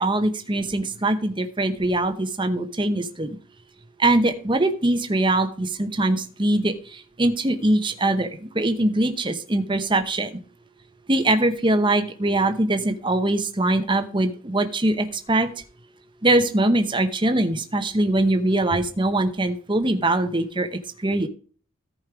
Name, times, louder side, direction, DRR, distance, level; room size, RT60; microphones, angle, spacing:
voice 1, 0.0-3.4 4.0-10.3 11.1-15.5 16.2-20.7 21.0-21.3, right 2 dB, 20° right, 8 dB, 0.9 m, -22 dB
14.0 x 5.3 x 4.9 m, 0.42 s
head